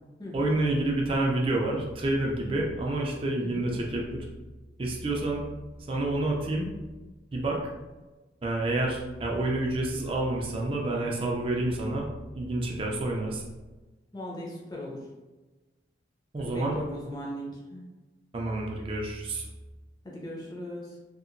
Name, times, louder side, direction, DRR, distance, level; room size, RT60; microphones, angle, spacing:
voice 1, 0.3-4.3 4.8-5.4 5.9-6.7 7.3-7.6 8.4-12.1 12.3-13.4 16.3-16.8 18.3-19.4, right 2 dB, 30° right, -1 dB, 0.4 m, -28 dB
voice 2, 14.1-15.1 16.4-17.8 20.0-21.0, left 1 dB, 20° left, -3 dB, 0.6 m, -38 dB
2.8 x 2.5 x 2.5 m, 1.2 s
head